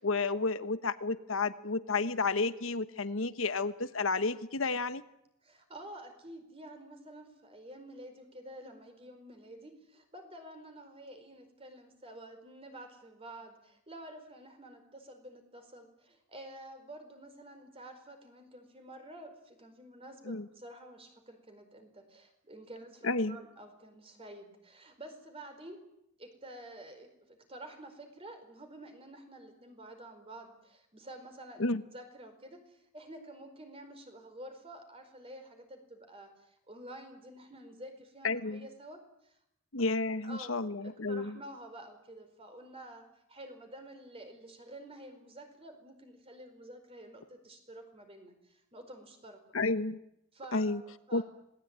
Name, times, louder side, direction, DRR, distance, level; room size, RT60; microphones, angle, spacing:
voice 1, 0.0-5.0 20.2-20.5 23.0-23.4 31.6-31.8 38.2-38.6 39.7-41.4 49.5-50.0 50.5-50.8 51.1-51.2, left 3 dB, 75° left, 12 dB, 1.2 m, -31 dB
voice 2, 5.4-25.8 26.2-39.4 40.2-40.5 40.8-43.0 43.3-49.4 50.3-51.2, right 1 dB, 30° right, 6 dB, 4.7 m, -50 dB
26.5 x 19.5 x 9.0 m, 0.79 s
head